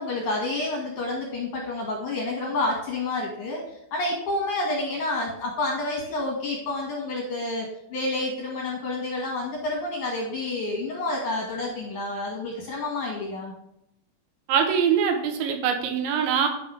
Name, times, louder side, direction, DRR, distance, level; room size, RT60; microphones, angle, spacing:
voice 1, 0.0-3.6 3.9-13.5, left 2 dB, 65° left, -1 dB, 2.1 m, -29 dB
voice 2, 14.5-16.5, right 7 dB, 85° right, 4 dB, 3.4 m, -23 dB
10.5 x 5.4 x 3.4 m, 0.81 s
omnidirectional pair, 5.2 m